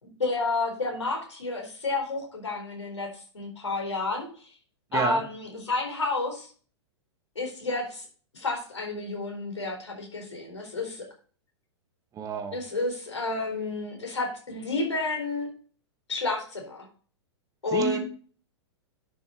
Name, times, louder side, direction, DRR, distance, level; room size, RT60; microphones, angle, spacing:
voice 1, 0.0-4.5 4.9-6.5 7.4-8.1 8.3-11.0 12.5-15.5 16.1-16.9 17.6-18.0, left 3 dB, 80° left, 2 dB, 4.2 m, -30 dB
voice 2, 4.9-5.2 12.1-12.6 17.7-18.0, right 7 dB, 25° right, 6 dB, 1.6 m, -29 dB
10.5 x 6.7 x 4.0 m, 0.41 s
figure-of-eight pair, 105°, 15 cm